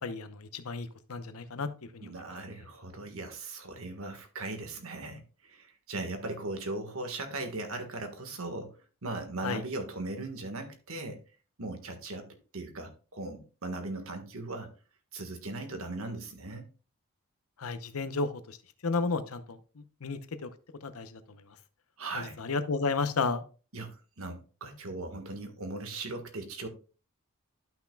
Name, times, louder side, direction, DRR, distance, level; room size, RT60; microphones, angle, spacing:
voice 1, 0.0-2.1 9.4-9.6 17.6-18.6 18.8-19.6 20.0-20.5 20.8-21.2 22.1-23.4, left 4 dB, 80° left, 11 dB, 0.8 m, -32 dB
voice 2, 2.0-8.8 9.0-11.2 11.6-12.3 12.5-14.7 15.1-16.7 22.0-22.4 23.7-26.7, right 2 dB, 75° right, 6 dB, 1.5 m, -38 dB
12.5 x 5.8 x 2.3 m, 0.37 s
head